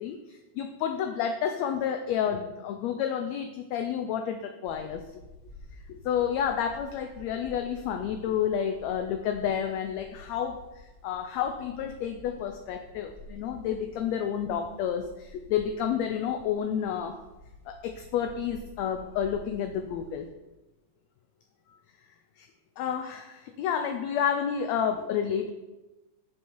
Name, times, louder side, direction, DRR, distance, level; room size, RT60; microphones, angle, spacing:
voice 1, 0.0-5.0 5.9-17.2 17.7-20.3 22.4-22.5 22.8-25.5, left 8 dB, 75° left, 6 dB, 1.7 m, -30 dB
sound 1, 4.6-20.3, left 1 dB, 25° left, 1.2 m, -51 dB
11.0 x 6.4 x 4.6 m, 1.1 s
omnidirectional pair, 3.5 m